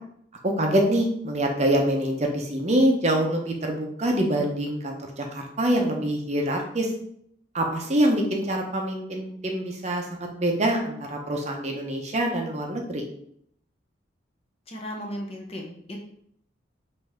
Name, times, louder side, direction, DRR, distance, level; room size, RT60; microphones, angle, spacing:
voice 1, 0.4-6.9 7.5-13.0, right 1 dB, 35° right, 1 dB, 0.7 m, -25 dB
voice 2, 14.7-16.0, equal, 30° left, 1 dB, 0.7 m, -35 dB
5.3 x 2.7 x 3.5 m, 0.68 s
head